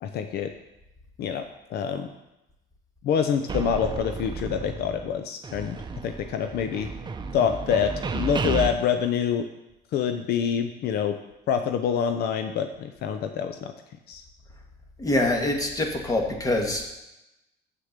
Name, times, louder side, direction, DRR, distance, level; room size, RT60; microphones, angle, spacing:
voice 1, 0.0-0.5 1.2-1.4 1.7-2.1 3.0-5.8 6.0-6.9 7.3-9.5 9.9-11.2 11.5-13.7 14.1-14.2, left 7 dB, 70° left, 7 dB, 0.7 m, -26 dB
sound 1, 3.5-5.2 5.4-8.7, right 4 dB, 25° right, 0.8 m, -32 dB
voice 2, 15.0-16.8, left 2 dB, 20° left, 2 dB, 1.7 m, -25 dB
7.7 x 6.6 x 6.6 m, 0.94 s
cardioid pair, 110°, 17 cm